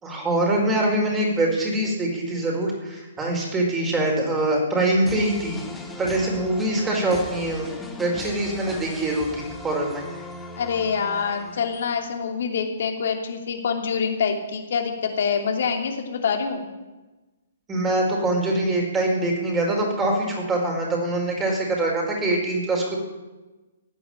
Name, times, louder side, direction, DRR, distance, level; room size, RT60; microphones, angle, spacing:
voice 1, 0.0-7.7 8.0-10.0 17.7-23.0, right 1 dB, 15° right, 0 dB, 4.9 m, -24 dB
sound 1, 5.1-12.0, left 2 dB, 10° left, 1.9 m, -39 dB
voice 2, 10.6-16.7, left 6 dB, 60° left, 4 dB, 2.9 m, -26 dB
16.5 x 9.2 x 9.1 m, 1.1 s
figure-of-eight pair, 125°, 0 cm